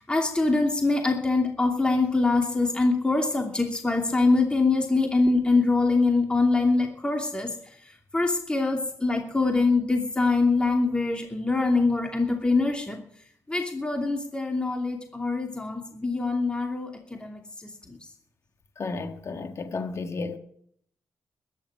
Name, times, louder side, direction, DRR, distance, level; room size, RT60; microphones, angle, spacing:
voice 1, 0.0-7.5 8.1-13.0 13.5-18.0, left 3 dB, 15° left, 2.7 m, -24 dB
voice 2, 18.8-20.4, left 3 dB, 50° left, 1.5 m, -32 dB
21.0 x 10.0 x 5.0 m
cardioid pair, 110°, 6 cm